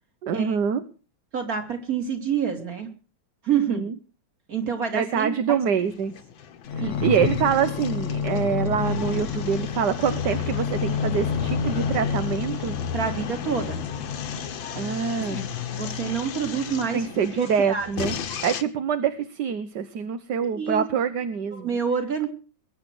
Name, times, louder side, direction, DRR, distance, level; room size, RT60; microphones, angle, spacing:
voice 1, 0.2-0.8 3.7-3.9 4.9-6.1 6.7-12.7 14.8-15.5 16.9-21.8, right 7 dB, 65° right, 11 dB, 1.6 m, -25 dB
voice 2, 1.3-2.9 3.4-3.8 4.5-5.6 6.8-7.0 12.9-13.8 15.7-17.1 17.4-17.9 20.4-20.9 21.5-22.3, right 7 dB, 45° right, 5 dB, 3.4 m, -27 dB
sound 1, 5.5-18.6, left 7 dB, 75° left, 2.1 m, -35 dB
sound 2, 6.6-14.6 15.2-16.5 17.1-17.2, left 6 dB, 50° left, 1.1 m, -30 dB
22.0 x 9.4 x 6.2 m, 0.36 s
omnidirectional pair, 2.1 m